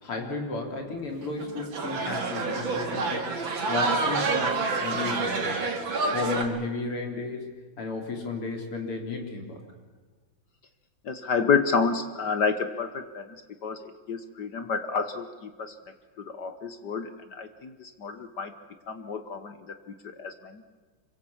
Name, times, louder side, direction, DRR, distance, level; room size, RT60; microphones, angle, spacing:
voice 1, 0.0-3.3 3.7-5.6 6.1-7.5 7.8-9.6, left 3 dB, 80° left, 2 dB, 4.4 m, -33 dB
sound 1, 1.2-6.4, right 3 dB, 60° right, 3.0 m, -28 dB
voice 2, 11.0-13.4 13.6-15.7 16.2-18.5 18.9-19.8 20.2-20.6, left 5 dB, 55° left, 9 dB, 1.5 m, -29 dB
26.5 x 23.5 x 7.3 m, 1.4 s
omnidirectional pair, 2.4 m